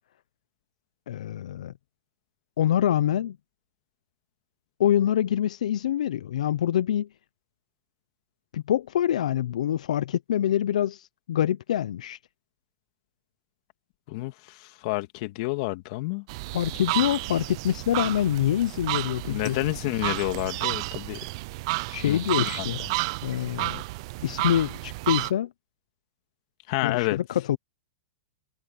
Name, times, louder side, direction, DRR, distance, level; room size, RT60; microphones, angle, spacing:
voice 1, 1.1-1.7 2.6-3.4 4.8-7.1 8.5-12.2 16.5-19.6 21.9-22.8 23.2-23.8 24.2-25.5 26.8-27.6, left 11 dB, 80° left, 0.7 m, -25 dB
voice 2, 14.1-16.3 19.3-21.3 22.1-22.2 22.6-22.7 26.7-27.2, left 22 dB, 50° left, 2.3 m, -29 dB
sound 1, 16.3-25.3, right 22 dB, 50° right, 0.7 m, -31 dB
hypercardioid pair, 135°, 4 cm